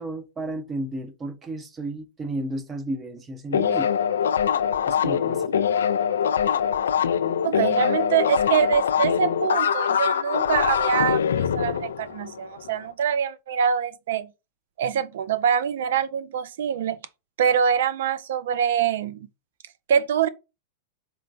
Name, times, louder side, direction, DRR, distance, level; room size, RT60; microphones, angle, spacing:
voice 1, 0.0-3.9 4.9-5.5, right 1 dB, 20° right, 0.7 m, -33 dB
sound 1, 3.5-12.7, left 8 dB, 90° left, 0.3 m, -23 dB
voice 2, 7.4-14.3 14.8-17.0 17.4-19.3 19.9-20.3, right 8 dB, 75° right, 0.3 m, -24 dB
4.3 x 3.2 x 2.6 m
hypercardioid pair, 120°, 0 cm